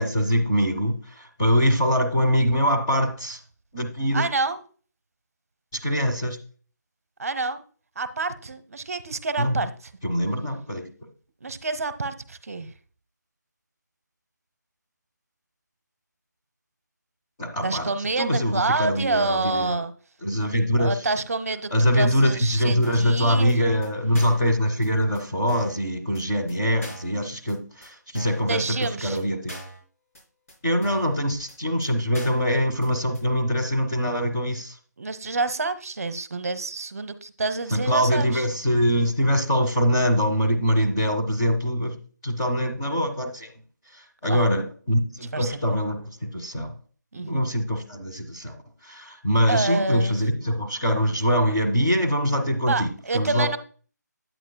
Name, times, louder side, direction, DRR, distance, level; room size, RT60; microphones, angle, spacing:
voice 1, 0.0-3.4 3.7-4.2 5.7-6.4 9.4-9.6 10.0-10.9 17.4-17.9 18.2-19.8 20.2-20.9 21.7-29.5 30.6-34.8 37.7-42.0 42.2-43.5 43.9-46.7 47.1-48.5 48.8-53.6, equal, 10° left, 0.7 m, -23 dB
voice 2, 4.1-4.6 7.2-7.6 8.0-9.7 11.4-12.7 17.6-19.9 20.8-23.8 28.5-29.2 35.0-38.5 44.3-44.5 45.3-45.7 47.1-47.5 49.5-50.2 52.7-53.6, right 3 dB, 50° right, 0.7 m, -28 dB
sound 1, 22.8-23.1 23.5-23.6 23.8-23.9 24.1-24.5 24.8-24.9 25.1-25.2 25.5-25.8 26.1-26.2 26.5-26.6 26.8-27.1 27.5-27.6 27.8-27.9 28.1-28.5 28.8-28.9 29.1-29.2 29.5-29.8 30.1-30.2 30.5-30.6 30.8-31.1 31.5-31.6 31.8-31.9 32.1-32.5 32.8-32.9 33.1-33.2, equal, 50° left, 4.6 m, -41 dB
9.2 x 8.9 x 2.2 m
figure-of-eight pair, 175°, 10 cm